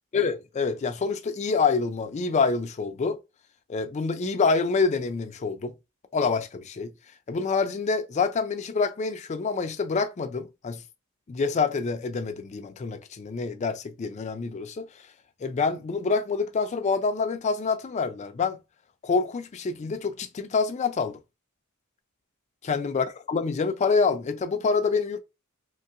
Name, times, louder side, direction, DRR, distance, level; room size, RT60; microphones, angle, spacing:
voice 1, 0.1-3.2 3.7-5.7 6.1-6.9 7.3-10.8 11.3-14.9 15.4-18.6 19.0-21.2 22.7-25.2, left 4 dB, 35° left, 0.3 m, -26 dB
3.0 x 2.7 x 2.4 m
head